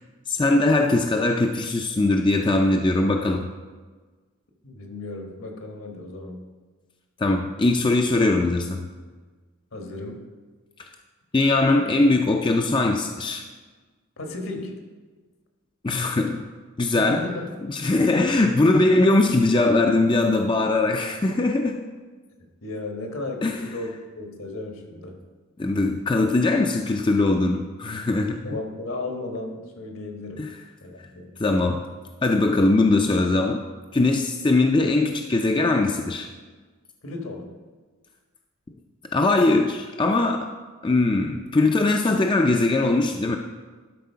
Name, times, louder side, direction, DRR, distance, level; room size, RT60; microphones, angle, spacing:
voice 1, 0.3-3.5 7.2-8.9 11.3-13.4 15.8-16.5 16.8-17.2 17.7-21.8 23.4-23.6 25.6-28.4 30.4-30.5 31.4-31.8 32.2-33.6 33.9-36.3 39.1-40.5 40.8-43.4, left 2 dB, 20° left, 3 dB, 0.4 m, -21 dB
voice 2, 4.6-6.4 9.7-10.2 14.2-14.8 17.1-17.5 22.6-25.2 28.4-30.5 30.8-31.3 37.0-37.5, left 2 dB, 75° left, 2 dB, 1.5 m, -34 dB
12.0 x 4.3 x 5.6 m, 1.4 s
head